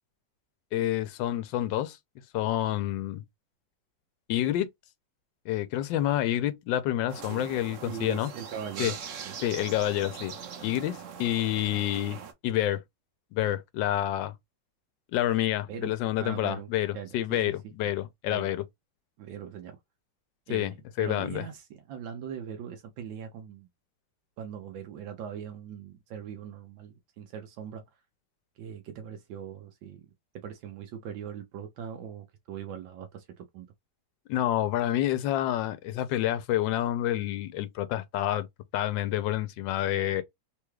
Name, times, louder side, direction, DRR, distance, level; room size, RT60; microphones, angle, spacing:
voice 1, 0.7-2.0 2.3-3.2 4.3-4.7 5.5-8.3 8.8-8.9 9.4-10.3 10.6-12.8 13.3-14.3 15.1-18.6 20.5-20.7 21.0-21.4 34.3-38.5 38.7-40.2, left 13 dB, 85° left, 1.3 m, -28 dB
sound 1, 7.1-12.3, right 7 dB, 60° right, 0.8 m, -41 dB
voice 2, 7.8-9.0 9.3-9.4 15.7-15.9 16.2-16.7 16.9-17.5 17.8-17.9 18.3-18.5 19.2-19.8 20.5-23.7 24.4-27.8 28.6-30.1 30.3-33.7, right 8 dB, 85° right, 1.4 m, -40 dB
3.7 x 2.3 x 3.1 m
omnidirectional pair, 2.0 m